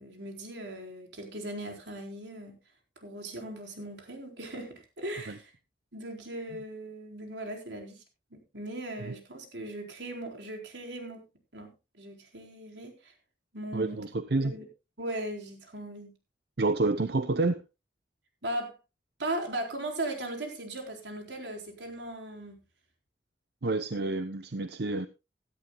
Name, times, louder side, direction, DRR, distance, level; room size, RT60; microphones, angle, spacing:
voice 1, 0.0-2.5 3.0-5.5 5.9-8.0 8.3-11.2 11.5-11.7 12.0-13.1 13.5-14.0 14.4-14.7 15.0-16.1 18.4-18.8 19.2-22.6, right 1 dB, 85° right, 4.2 m, -38 dB
voice 2, 13.7-14.5 16.6-17.6 23.6-25.1, right 3 dB, 65° right, 0.7 m, -29 dB
16.5 x 13.0 x 2.3 m
head